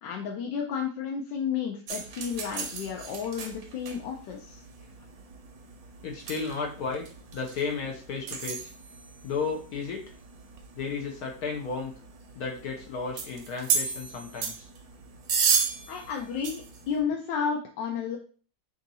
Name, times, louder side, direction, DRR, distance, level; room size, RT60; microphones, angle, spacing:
voice 1, 0.0-4.6 15.9-18.2, left 7 dB, 85° left, 0 dB, 1.3 m, -32 dB
sound 1, 1.9-17.0, right 6 dB, 65° right, 1.0 m, -34 dB
voice 2, 6.0-7.1 7.3-8.7 9.2-10.0 10.8-11.9 12.3-14.7, left 5 dB, 65° left, 2 dB, 1.0 m, -33 dB
3.5 x 2.7 x 4.0 m, 0.40 s
omnidirectional pair, 1.9 m